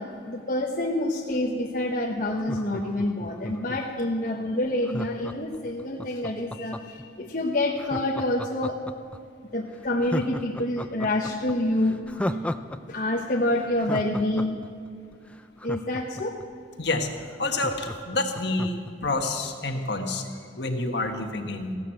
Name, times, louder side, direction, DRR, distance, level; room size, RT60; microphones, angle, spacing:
voice 1, 0.0-8.8 9.5-12.5 12.9-14.6 15.6-16.3, left 1 dB, 45° left, -1 dB, 1.1 m, -27 dB
Laughter, 2.3-4.0 4.8-7.0 7.8-9.2 9.5-9.6 10.0-12.8 13.0-13.1 13.5-16.4 16.9-17.0 17.2-18.9 19.3-19.4, left 1 dB, 5° left, 0.4 m, -35 dB
voice 2, 16.8-17.1 17.4-21.8, left 2 dB, 60° left, 4 dB, 1.6 m, -28 dB
16.0 x 12.0 x 7.8 m, 2.3 s
head